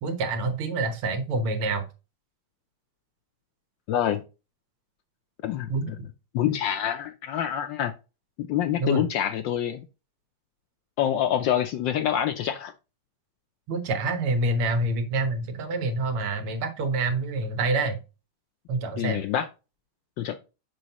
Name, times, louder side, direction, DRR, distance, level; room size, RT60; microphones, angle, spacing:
voice 1, 0.0-1.8 5.7-5.9 8.8-9.0 13.7-18.0 18.7-19.2, right 2 dB, 85° right, 7 dB, 1.9 m, -27 dB
voice 2, 3.9-4.2 5.4-6.0 6.3-7.9 8.4-9.8 11.0-12.7 19.0-19.5 20.2-20.4, left 10 dB, 75° left, 8 dB, 1.1 m, -26 dB
6.3 x 5.4 x 2.9 m, 0.30 s
omnidirectional pair, 2.3 m